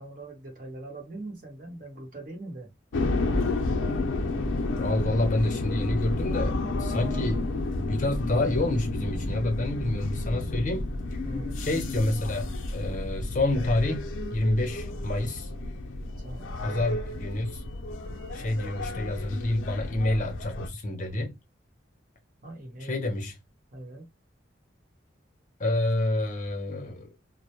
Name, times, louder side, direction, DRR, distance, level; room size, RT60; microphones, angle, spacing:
voice 1, 0.0-2.7 6.9-7.3 11.2-11.6 16.2-16.8 22.4-23.0 23.7-24.1, right 1 dB, 45° right, 0.9 m, -41 dB
sound 1, 2.9-20.7, left 2 dB, 90° left, 0.5 m, -31 dB
voice 2, 4.8-10.9 11.6-15.5 16.6-17.6 18.3-21.3 22.8-23.3 25.6-27.1, left 1 dB, 40° left, 0.6 m, -28 dB
2.1 x 2.1 x 2.8 m
head